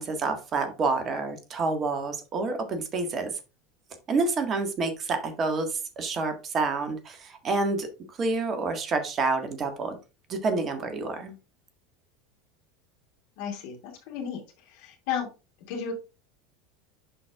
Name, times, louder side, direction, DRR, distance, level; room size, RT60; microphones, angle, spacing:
voice 1, 0.0-3.3 4.1-10.0 10.3-11.3, right 3 dB, 35° right, 6 dB, 1.7 m, -28 dB
voice 2, 13.4-13.8 14.1-14.4 14.7-15.3 15.7-15.9, left 7 dB, 60° left, 2 dB, 2.4 m, -32 dB
10.5 x 4.4 x 2.4 m, 0.30 s
figure-of-eight pair, 80°, 0 cm